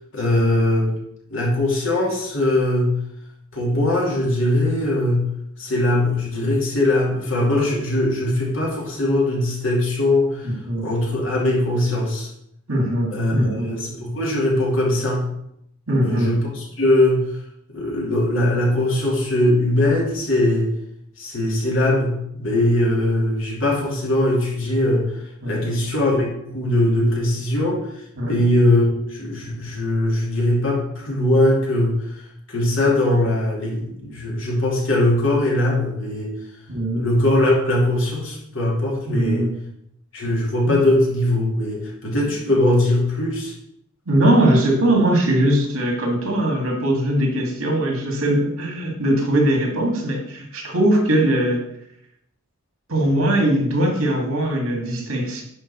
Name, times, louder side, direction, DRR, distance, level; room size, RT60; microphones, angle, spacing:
voice 1, 0.1-0.9 1.3-2.9 3.5-5.3 5.6-10.5 10.8-12.3 13.1-15.2 16.0-17.3 17.7-20.7 21.2-25.1 25.5-27.8 28.2-31.9 32.5-36.3 36.9-39.5 40.1-43.5, left 1 dB, 65° left, -3 dB, 2.7 m, -20 dB
voice 2, 10.4-10.9 12.7-13.7 15.9-16.4 25.4-25.7 28.2-28.3 36.7-37.0 39.1-39.5 40.6-40.8 44.1-51.6 52.9-55.4, right 1 dB, 75° right, 1 dB, 2.1 m, -20 dB
10.5 x 4.6 x 4.3 m, 0.77 s
head